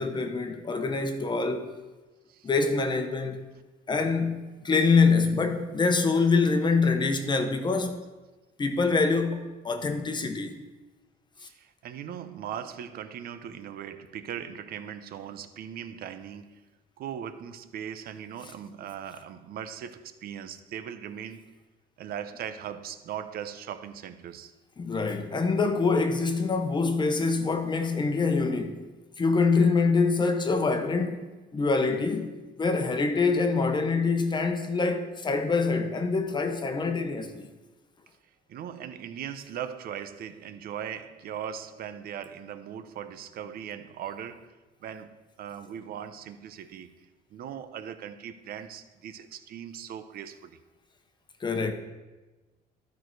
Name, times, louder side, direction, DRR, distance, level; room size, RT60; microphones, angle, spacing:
voice 1, 0.0-1.7 2.4-3.5 3.9-8.0 8.6-10.6 24.8-28.9 29.2-37.5 51.4-51.7, left 4 dB, 25° left, 0.9 m, -25 dB
voice 2, 11.4-16.6 17.0-21.5 22.0-24.5 38.5-50.6, right 9 dB, 65° right, 0.7 m, -39 dB
12.5 x 4.7 x 4.6 m
cardioid pair, 110°, 17 cm